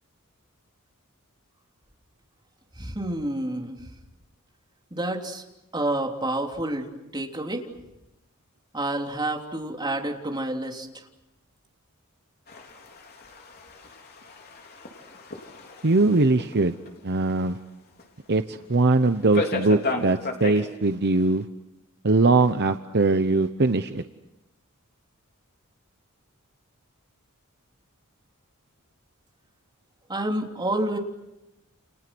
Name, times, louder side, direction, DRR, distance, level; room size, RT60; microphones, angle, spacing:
voice 1, 2.8-3.7 4.9-5.4 5.7-7.7 8.7-10.9 30.1-31.0, right 1 dB, 20° right, 1 dB, 3.4 m, -29 dB
sound 1, 12.5-16.5 16.9-17.0 17.5-17.6 18.0-18.1 19.3-20.7, left 2 dB, 50° left, 3.9 m, -34 dB
voice 2, 15.8-16.8 17.0-17.6 18.3-21.4 22.0-24.0, right 3 dB, 50° right, 9 dB, 0.9 m, -21 dB
30.0 x 29.5 x 6.2 m, 0.95 s
head